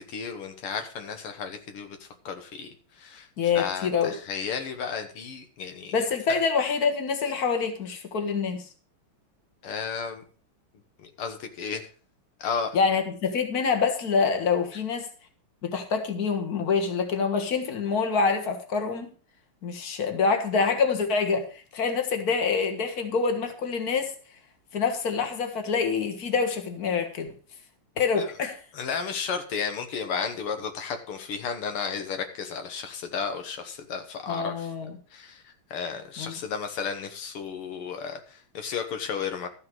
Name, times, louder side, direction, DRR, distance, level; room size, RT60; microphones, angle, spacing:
voice 1, 0.0-2.7 3.0-6.4 9.6-10.2 11.0-11.8 12.4-12.8 28.2-28.3 28.7-34.7 35.1-39.5, left 6 dB, 80° left, 7 dB, 2.1 m, -33 dB
voice 2, 3.4-4.1 5.9-8.6 12.7-15.1 15.6-19.1 19.6-24.1 24.7-27.3 28.0-28.6 34.3-34.9 36.2-36.4, left 5 dB, 45° left, 5 dB, 2.0 m, -26 dB
13.0 x 6.7 x 6.2 m, 0.40 s
omnidirectional pair, 2.4 m